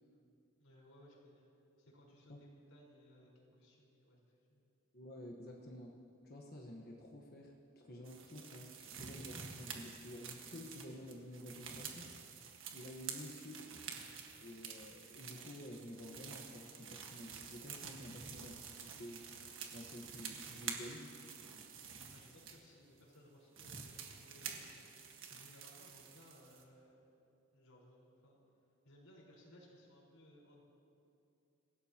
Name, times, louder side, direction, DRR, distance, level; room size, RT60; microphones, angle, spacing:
voice 1, 0.6-1.5 1.8-4.7 22.1-27.1 27.5-28.4 28.8-30.6, equal, 90° left, -3 dB, 4.7 m, -62 dB
voice 2, 4.9-6.0 6.2-12.1 12.7-13.7 14.4-18.6 19.0-19.2 19.7-21.1, left 1 dB, 45° left, -1 dB, 1.3 m, -51 dB
sound 1, 8.0-22.6 23.1-23.2 23.6-26.6, right 6 dB, 65° right, 1.6 m, -49 dB
28.0 x 17.0 x 2.9 m, 2.7 s
head